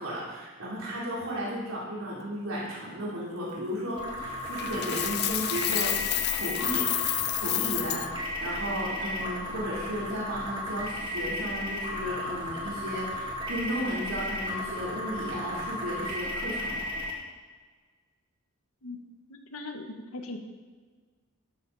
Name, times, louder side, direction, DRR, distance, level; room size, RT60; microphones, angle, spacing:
voice 1, 0.0-5.9 6.3-16.8, equal, 75° right, -6 dB, 3.7 m, -34 dB
sound 1, 3.9-17.1, left 1 dB, 20° right, 2.1 m, -35 dB
Coin (dropping), 4.6-8.1, left 14 dB, 50° left, 0.5 m, -29 dB
voice 2, 19.3-20.4, left 2 dB, 85° left, 5 dB, 1.5 m, -39 dB
12.5 x 12.0 x 4.2 m, 1.5 s
head